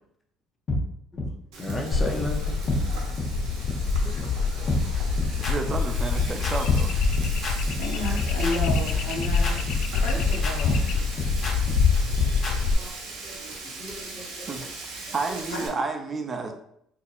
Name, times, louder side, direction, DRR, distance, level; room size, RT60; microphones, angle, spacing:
sound 1, 0.7-0.8 1.2-1.3 1.7-1.8 2.2-2.3 2.7-2.8 3.2-3.3 3.7-3.8 4.2-4.3 4.7-12.5, left 2 dB, 50° left, 1.2 m, -28 dB
Frying (food), 1.5-15.7, right 3 dB, 80° right, 0.8 m, -39 dB
voice 1, 1.6-2.5 4.0-4.3 4.5-4.7 12.8-12.9 13.8-14.5, left 2 dB, 25° left, 2 dB, 0.8 m, -34 dB
sound 2, 1.9-12.7, left 5 dB, 70° left, 0.3 m, -25 dB
voice 2, 5.4-6.9 14.5-14.6 14.9-16.5, right 4 dB, 35° right, 6 dB, 0.5 m, -31 dB
voice 3, 7.8-10.8 15.5-15.8 16.4-16.5, left 1 dB, 90° left, -1 dB, 0.9 m, -32 dB
4.0 x 2.7 x 2.5 m, 0.73 s
hypercardioid pair, 70°, 0 cm